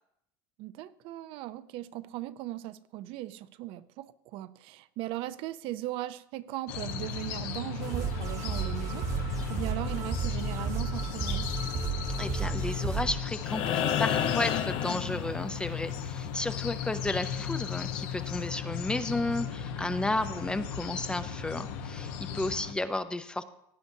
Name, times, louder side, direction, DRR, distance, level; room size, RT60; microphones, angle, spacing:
voice 1, 0.6-11.5, right 15 dB, 55° right, 14 dB, 0.4 m, -38 dB
sound 1, 6.7-22.7, left 7 dB, 75° left, 1.0 m, -36 dB
sound 2, 7.8-13.1, right 6 dB, 35° right, 1.1 m, -33 dB
voice 2, 12.2-23.4, left 2 dB, 10° left, 11 dB, 0.4 m, -33 dB
sound 3, 13.4-15.7 17.6-17.7, left 9 dB, 50° left, 0.7 m, -30 dB
17.0 x 9.5 x 2.7 m, 0.78 s
supercardioid pair, 135°, 11 cm